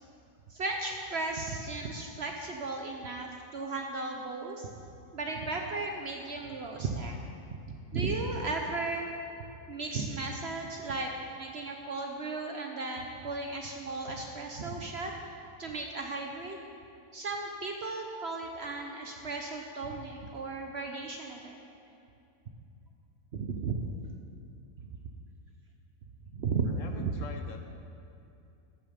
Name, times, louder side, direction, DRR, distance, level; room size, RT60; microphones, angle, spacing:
voice 1, 0.5-4.7 5.1-7.2 7.9-9.1 9.7-15.1 15.6-16.6 17.1-21.6 23.3-23.7 26.3-26.7 27.0-27.1, right 3 dB, 50° right, 2 dB, 0.8 m, -35 dB
voice 2, 26.7-27.6, left 5 dB, 60° left, 4 dB, 1.0 m, -45 dB
13.5 x 7.1 x 5.1 m, 2.6 s
omnidirectional pair, 1.7 m